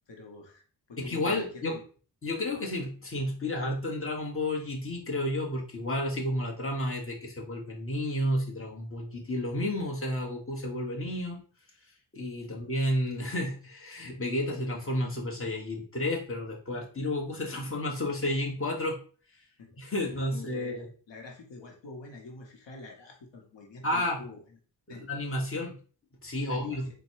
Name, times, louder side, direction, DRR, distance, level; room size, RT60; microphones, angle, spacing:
voice 1, 0.1-1.8 12.5-12.6 19.6-19.8 20.3-24.4 24.9-25.0 26.4-26.9, left 3 dB, 80° left, 1 dB, 1.0 m, -46 dB
voice 2, 1.0-1.8 2.2-11.4 12.1-19.0 19.8-20.9 23.8-24.2 24.9-25.7 26.2-26.8, left 1 dB, 30° left, -2 dB, 1.2 m, -31 dB
4.0 x 2.3 x 4.5 m, 0.40 s
wide cardioid pair, 65°, 42 cm